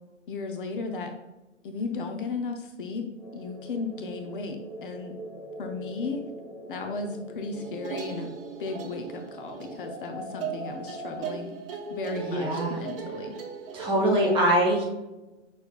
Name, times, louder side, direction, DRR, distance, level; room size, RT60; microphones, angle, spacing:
voice 1, 0.3-1.1 1.6-3.1 3.3-5.1 5.6-6.2 6.7-8.3 8.6-11.5 11.9-13.3, left 4 dB, 45° left, 5 dB, 0.6 m, -35 dB
sound 1, 3.2-11.2, right 1 dB, 5° left, 0.4 m, -42 dB
sound 2, 7.5-13.9, right 6 dB, 50° right, 0.8 m, -38 dB
voice 2, 12.2-12.8 13.7-14.8, right 1 dB, 15° right, -1 dB, 0.8 m, -23 dB
6.2 x 3.2 x 2.4 m, 1.0 s
figure-of-eight pair, 125°, 36 cm